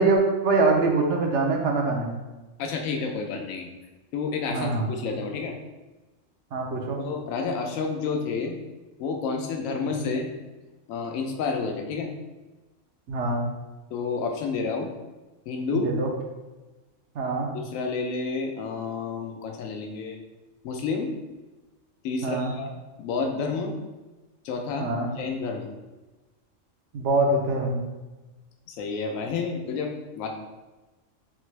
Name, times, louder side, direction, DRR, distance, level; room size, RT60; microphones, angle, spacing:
voice 1, 0.0-2.1 4.5-4.9 6.5-7.0 9.9-10.1 13.1-13.5 15.7-16.1 17.2-17.5 22.2-22.5 24.8-25.1 26.9-27.8, right 3 dB, 70° right, 1 dB, 0.9 m, -24 dB
voice 2, 2.6-3.7 4.1-5.6 7.0-8.5 9.0-10.3 10.9-12.1 13.9-14.9 15.5-15.9 17.5-20.2 20.6-21.1 22.0-22.7 23.0-23.8 24.4-25.7 28.7-30.3, left 4 dB, 85° left, 3 dB, 1.0 m, -30 dB
3.6 x 3.3 x 3.1 m, 1.2 s
omnidirectional pair, 1.3 m